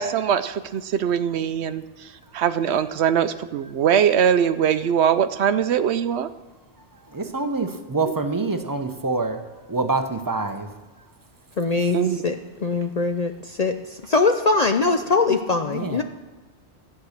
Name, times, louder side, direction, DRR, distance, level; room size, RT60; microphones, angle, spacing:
voice 1, 0.0-6.3 11.9-12.2, right 8 dB, 70° right, 12 dB, 0.8 m, -22 dB
voice 2, 7.1-9.4 9.7-10.7 15.7-16.0, right 3 dB, 20° right, 7 dB, 0.7 m, -26 dB
voice 3, 11.6-16.0, left 4 dB, 50° left, 6 dB, 0.5 m, -22 dB
13.5 x 8.5 x 6.5 m, 1.2 s
omnidirectional pair, 1.2 m